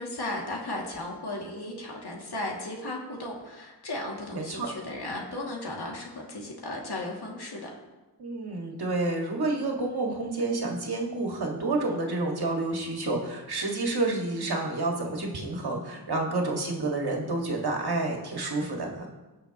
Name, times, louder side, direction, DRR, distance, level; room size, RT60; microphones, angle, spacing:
voice 1, 0.0-7.7, left 2 dB, 65° left, -2 dB, 2.3 m, -35 dB
voice 2, 4.3-4.7 8.2-19.1, right 2 dB, 65° right, 0 dB, 1.9 m, -29 dB
17.0 x 6.3 x 3.0 m, 1.1 s
cardioid pair, 50°, 41 cm